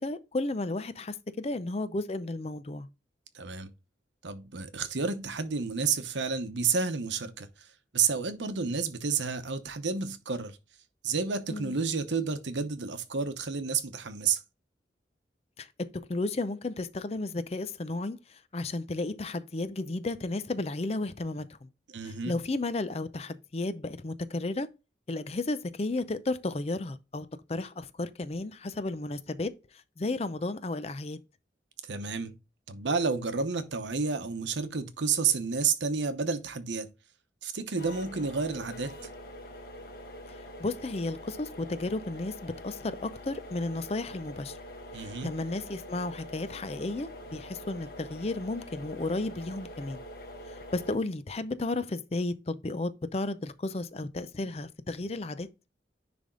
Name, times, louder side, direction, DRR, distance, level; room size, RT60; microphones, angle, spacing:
voice 1, 0.0-2.9 11.5-11.8 15.6-21.7 22.0-24.7 25.1-29.6 30.0-31.2 40.6-44.6 44.9-50.0 50.7-55.5, left 2 dB, 35° left, 0.5 m, -33 dB
voice 2, 3.3-3.7 4.2-7.5 7.9-10.6 11.0-14.4 21.9-22.4 31.9-32.4 32.7-36.9 37.4-38.9 44.9-45.3, right 5 dB, 85° right, 0.9 m, -30 dB
sound 1, 37.8-51.0, left 1 dB, 55° left, 1.2 m, -45 dB
10.0 x 3.5 x 3.8 m
head